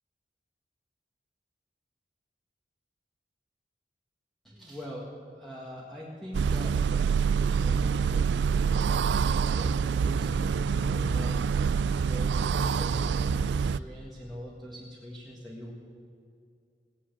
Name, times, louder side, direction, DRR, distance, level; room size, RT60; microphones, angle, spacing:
voice 1, 4.4-15.7, equal, ahead, -5 dB, 1.8 m, -43 dB
sound 1, 6.3-13.8, right 6 dB, 75° right, 0.3 m, -26 dB
17.0 x 10.0 x 8.3 m, 2.4 s
head